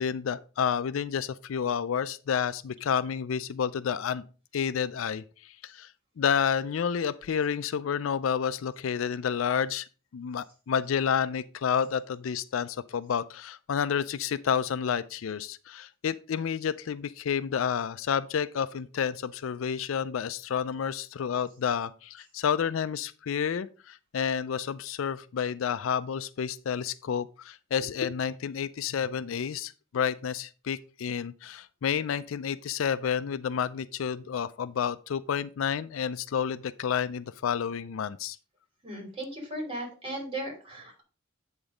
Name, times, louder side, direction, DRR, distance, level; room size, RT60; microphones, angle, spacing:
voice 1, 0.0-4.2 4.5-5.9 6.2-9.9 10.1-38.4, left 7 dB, 80° left, 0.4 m, -30 dB
voice 2, 38.8-41.0, right 1 dB, 25° right, 3.3 m, -36 dB
8.9 x 3.9 x 5.0 m
head